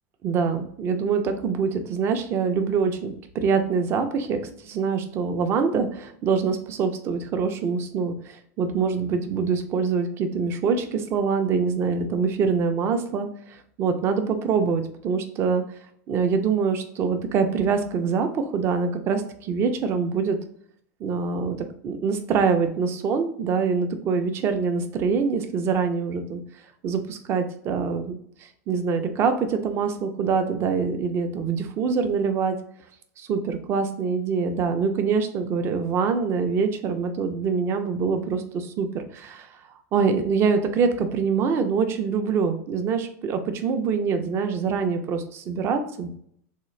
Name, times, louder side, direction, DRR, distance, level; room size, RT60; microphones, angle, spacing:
voice 1, 0.2-15.6 16.1-20.4 21.0-26.4 26.8-32.6 33.2-39.6 39.9-46.1, right 5 dB, 30° right, 7 dB, 0.5 m, -25 dB
3.7 x 2.4 x 3.1 m, 0.64 s
supercardioid pair, 145°, 8 cm